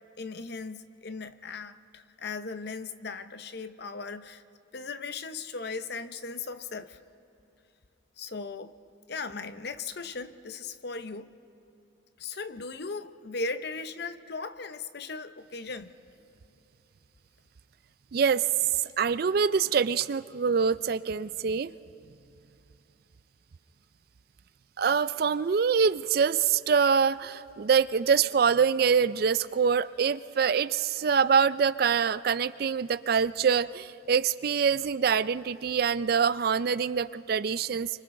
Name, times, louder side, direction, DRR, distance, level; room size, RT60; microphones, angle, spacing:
voice 1, 0.2-4.4 4.7-7.0 8.2-8.7 9.1-11.4 12.2-15.9, left 4 dB, 55° left, 11 dB, 0.8 m, -38 dB
voice 2, 18.1-18.4 19.0-21.7 24.8-37.9, right 6 dB, 50° right, 16 dB, 0.4 m, -25 dB
29.0 x 24.5 x 3.8 m, 2.8 s
head